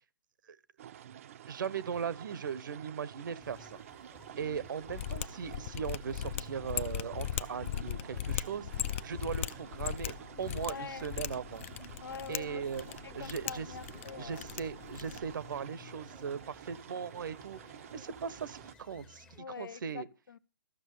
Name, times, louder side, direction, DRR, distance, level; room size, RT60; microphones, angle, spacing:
sound 1, 0.8-18.8, right 11 dB, 40° right, 0.6 m, -50 dB
voice 1, 1.5-3.8 4.4-11.6 12.3-12.9 13.1-13.7 14.2-17.6 17.9-19.2 19.6-20.1, right 7 dB, 70° right, 1.0 m, -38 dB
sound 2, 3.4-19.4, left 4 dB, 10° left, 0.8 m, -58 dB
Mechanisms, 4.9-15.3, left 11 dB, 35° left, 0.5 m, -39 dB
voice 2, 10.6-11.1 12.0-14.5 19.4-20.4, left 6 dB, 85° left, 0.9 m, -45 dB
14.0 x 6.2 x 6.5 m
hypercardioid pair, 160°, 11 cm